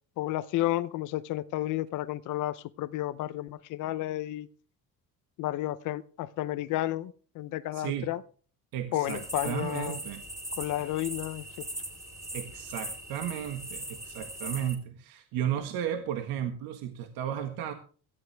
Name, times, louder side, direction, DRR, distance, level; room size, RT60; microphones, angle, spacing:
voice 1, 0.2-4.5 5.4-8.2 8.9-10.0 10.6-11.7, left 15 dB, 60° left, 0.7 m, -32 dB
voice 2, 7.7-8.1 8.7-10.2 12.3-17.7, right 10 dB, 85° right, 1.6 m, -34 dB
sound 1, 9.0-14.8, right 1 dB, 10° right, 2.9 m, -40 dB
17.5 x 13.5 x 3.4 m
cardioid pair, 170°, 34 cm